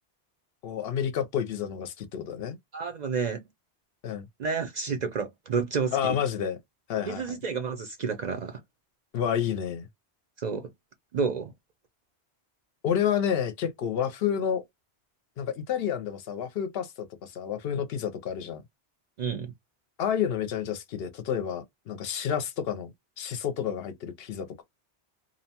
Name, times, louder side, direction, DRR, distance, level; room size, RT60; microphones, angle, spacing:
voice 1, 0.6-2.6 4.0-4.3 5.9-6.6 6.9-7.4 9.1-9.9 12.8-14.6 15.4-18.6 20.0-24.6, left 8 dB, 70° left, 0.8 m, -30 dB
voice 2, 2.7-3.5 4.4-6.2 7.1-8.6 10.4-10.7 11.1-11.5 19.2-19.5, right 5 dB, 55° right, 0.5 m, -30 dB
2.6 x 2.1 x 2.7 m
omnidirectional pair, 1.1 m